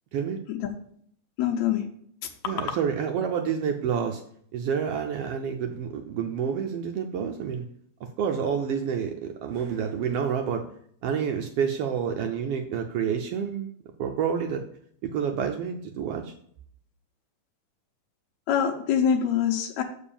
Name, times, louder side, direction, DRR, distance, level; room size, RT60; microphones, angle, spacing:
voice 1, 0.1-0.4 2.5-4.2 4.5-7.7 8.2-10.7 11.0-13.7 14.0-14.7 15.0-16.3, right 7 dB, 75° right, 4 dB, 1.4 m, -28 dB
voice 2, 1.4-1.8 18.5-19.8, left 8 dB, 75° left, 2 dB, 2.0 m, -24 dB
7.1 x 4.6 x 7.0 m, 0.65 s
omnidirectional pair, 3.3 m